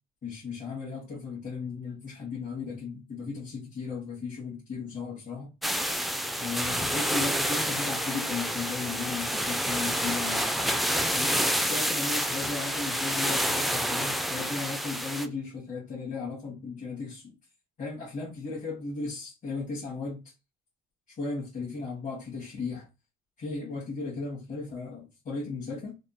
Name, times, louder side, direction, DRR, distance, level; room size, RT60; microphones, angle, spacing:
voice 1, 0.2-5.5 6.4-10.7 11.1-17.3 17.8-20.2 21.2-22.9 23.4-25.9, left 4 dB, 50° left, 1.5 m, -36 dB
sound 1, 5.6-15.3, equal, ahead, 0.3 m, -28 dB
3.5 x 2.3 x 2.7 m
cardioid pair, 110°, 17 cm